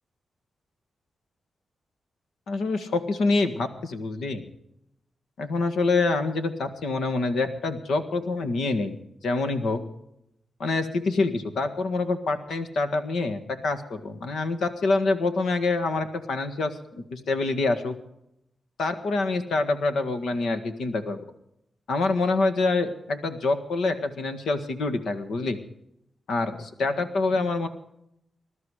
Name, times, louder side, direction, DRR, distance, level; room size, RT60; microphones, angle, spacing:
voice 1, 2.5-4.4 5.4-9.8 10.6-17.9 18.8-21.2 21.9-25.6 26.3-27.7, left 3 dB, 85° left, 9 dB, 1.7 m, -26 dB
20.5 x 12.0 x 4.9 m, 0.79 s
cardioid pair, 85°, 0 cm